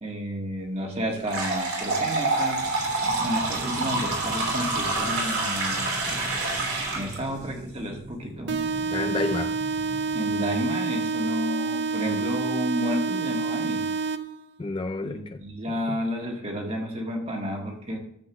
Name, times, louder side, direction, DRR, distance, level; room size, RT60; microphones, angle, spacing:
voice 1, 0.0-5.8 6.1-6.2 7.0-8.6 10.1-13.9 15.0-18.0, equal, 25° right, 1 dB, 1.6 m, -31 dB
sound 1, 1.2-7.2, right 2 dB, 90° right, 3.2 m, -27 dB
sound 2, 2.6-10.6, equal, 5° right, 1.4 m, -41 dB
sound 3, 8.5-14.5, right 4 dB, 50° right, 0.5 m, -28 dB
voice 2, 8.9-9.5 14.6-16.0, left 3 dB, 25° left, 8 dB, 0.3 m, -31 dB
13.0 x 7.6 x 3.0 m, 0.76 s
head